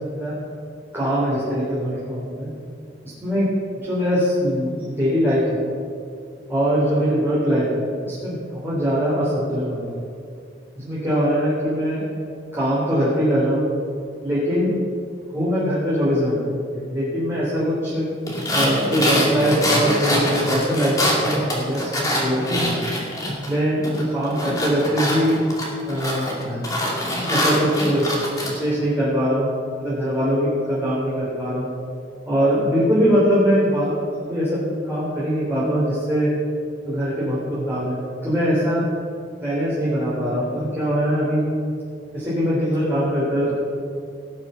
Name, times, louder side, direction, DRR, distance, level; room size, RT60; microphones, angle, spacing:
voice 1, 0.9-2.5 3.0-3.5 3.8-5.6 6.5-9.9 10.8-12.0 12.5-13.6 14.2-14.7 15.3-16.4 16.7-18.0 18.5-22.8 23.4-23.8 24.1-25.4 25.9-26.6 27.3-28.1 28.4-29.5 29.8-31.7 32.3-34.0 34.3-36.3 36.8-38.0 38.2-38.9 39.4-41.4 42.1-43.5, equal, 15° right, -10 dB, 3.4 m, -22 dB
sound 1, 18.3-23.5 23.8-28.5, equal, 20° left, 2.3 m, -24 dB
18.0 x 6.8 x 5.6 m, 2.3 s
head